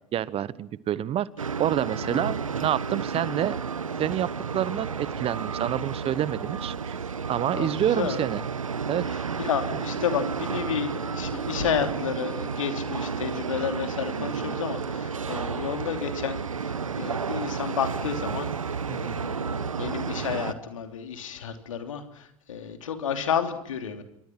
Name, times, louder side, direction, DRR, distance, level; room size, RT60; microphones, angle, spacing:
voice 1, 0.1-3.6 4.0-4.3 4.5-7.0 7.3-8.4 8.9-9.0 18.9-19.1, right 11 dB, 35° right, 19 dB, 1.1 m, -28 dB
sound 1, 1.4-20.5, right 5 dB, 85° right, 1.0 m, -32 dB
voice 2, 2.0-2.4 7.5-8.2 9.1-18.7 19.0-24.0, left 7 dB, 75° left, 7 dB, 3.2 m, -31 dB
27.0 x 24.5 x 6.1 m, 0.74 s
figure-of-eight pair, 80°, 17 cm